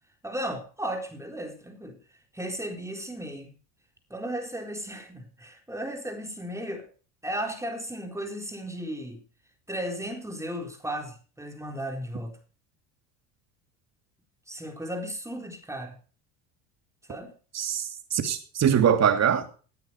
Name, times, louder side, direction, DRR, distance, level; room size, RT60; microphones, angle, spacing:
voice 1, 0.2-2.0 2.3-3.5 4.1-6.9 7.2-9.2 9.7-12.4 14.5-16.0 17.1-17.3, right 1 dB, 5° right, 4.1 m, -35 dB
voice 2, 17.5-19.6, right 8 dB, 45° right, 2.8 m, -23 dB
18.0 x 9.6 x 4.6 m
hypercardioid pair, 75°, 38 cm